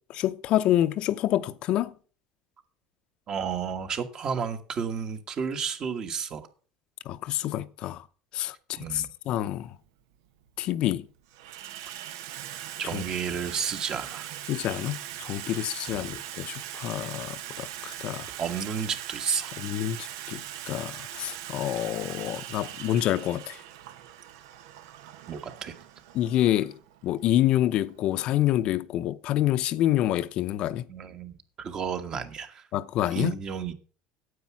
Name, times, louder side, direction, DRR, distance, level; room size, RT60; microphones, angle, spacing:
voice 1, 0.2-1.9 7.0-8.0 8.3-9.8 10.6-11.1 12.9-13.0 14.5-18.3 19.6-23.6 26.1-30.9 32.7-33.3, left 13 dB, 50° left, 0.6 m, -27 dB
voice 2, 3.3-6.5 8.8-9.1 12.8-14.3 15.9-16.1 18.4-19.6 25.3-25.7 30.9-32.7 33.1-33.7, right 7 dB, 35° right, 1.5 m, -32 dB
Water tap faucet / Sink (filling or washing), 9.4-9.5 10.4-10.8 11.1-28.7, right 12 dB, 90° right, 1.0 m, -41 dB
9.4 x 8.4 x 6.0 m
cardioid pair, 130°, 2 cm